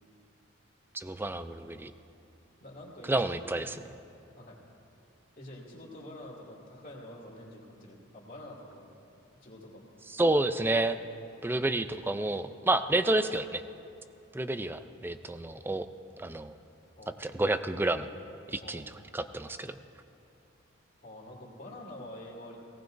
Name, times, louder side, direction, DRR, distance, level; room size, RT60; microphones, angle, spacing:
voice 1, 0.9-1.9 3.1-3.7 10.1-11.0 11.4-13.6 14.3-15.9 16.2-16.5 17.2-18.1 18.5-18.8 19.1-19.8, right 2 dB, 10° right, 10 dB, 0.4 m, -29 dB
voice 2, 2.6-3.4 3.7-3.8 4.4-4.6 5.4-9.0 9.4-9.9 17.0-17.3 18.6-19.0 21.0-22.6, left 1 dB, 45° left, -4 dB, 2.6 m, -47 dB
18.5 x 18.0 x 2.6 m, 2.6 s
head